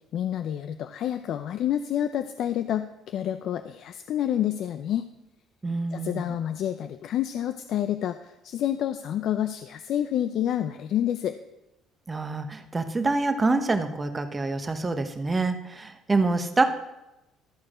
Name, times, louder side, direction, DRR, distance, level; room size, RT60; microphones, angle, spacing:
voice 1, 0.1-5.1 5.9-11.4, left 11 dB, 60° left, 10 dB, 0.4 m, -28 dB
voice 2, 5.6-6.4 12.1-16.6, right 3 dB, 20° right, 8 dB, 0.8 m, -26 dB
13.0 x 4.7 x 6.2 m, 0.95 s
cardioid pair, 130°, 0 cm